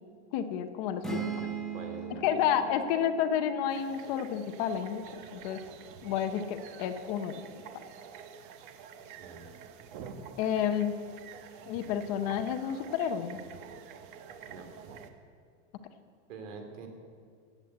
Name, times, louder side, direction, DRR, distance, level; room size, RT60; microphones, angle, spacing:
voice 1, 0.3-1.2 2.2-5.6 6.0-7.4 10.4-11.0 11.7-13.4, left 9 dB, 35° left, 9 dB, 0.7 m, -30 dB
sound 1, 1.0-4.8, right 6 dB, ahead, 0.9 m, -39 dB
voice 2, 1.7-2.4 9.2-9.6 14.5-14.7 16.3-16.9, right 4 dB, 90° right, 4 dB, 3.3 m, -45 dB
sound 2, 3.7-15.1, right 7 dB, 45° right, 1.0 m, -48 dB
16.5 x 8.2 x 8.0 m, 2.1 s
supercardioid pair, 180°, 36 cm